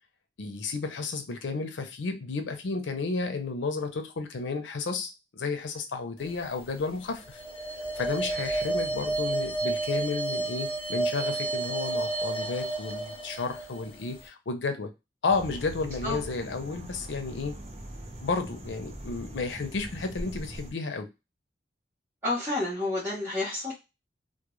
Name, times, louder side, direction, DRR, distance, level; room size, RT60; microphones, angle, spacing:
voice 1, 0.4-7.4 8.0-14.9 15.2-17.6 18.2-21.1, left 4 dB, 90° left, 0.5 m, -32 dB
sound 1, 6.3-6.8 7.1-14.3, right 2 dB, 30° left, 0.4 m, -31 dB
sound 2, 15.3-20.7, right 1 dB, 35° right, 0.6 m, -41 dB
voice 2, 22.2-23.7, left 2 dB, 15° right, 0.9 m, -30 dB
2.3 x 2.1 x 3.0 m
head